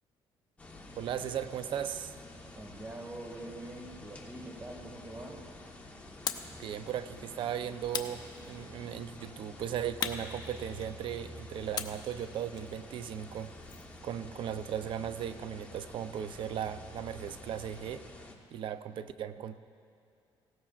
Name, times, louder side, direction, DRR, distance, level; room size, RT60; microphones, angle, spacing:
sound 1, 0.6-18.3, left 1 dB, 15° left, 1.2 m, -49 dB
voice 1, 1.0-2.1 6.6-13.5 14.0-18.0 18.5-19.6, right 9 dB, 60° right, 12 dB, 0.5 m, -37 dB
voice 2, 2.6-5.4, right 1 dB, 20° right, 1 dB, 2.0 m, -44 dB
sound 2, 6.3-6.6 7.9-8.8 10.0-11.1 11.7-14.0, left 7 dB, 45° left, 0.7 m, -39 dB
18.5 x 17.0 x 2.5 m, 2.5 s
cardioid pair, 125°, 10 cm